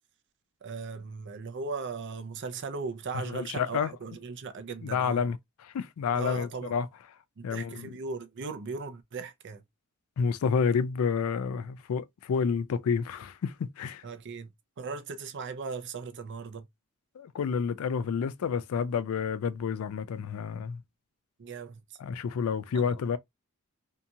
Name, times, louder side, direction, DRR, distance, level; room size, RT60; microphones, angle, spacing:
voice 1, 0.6-5.2 6.1-6.7 7.4-9.6 14.0-14.5 14.8-16.7 21.4-21.8 22.7-23.0, right 4 dB, 55° right, 0.5 m, -38 dB
voice 2, 3.3-3.9 4.8-5.4 5.6-6.9 7.4-7.9 10.2-14.0 17.2-20.8 22.0-23.2, left 6 dB, 75° left, 0.3 m, -29 dB
2.7 x 2.7 x 2.3 m
head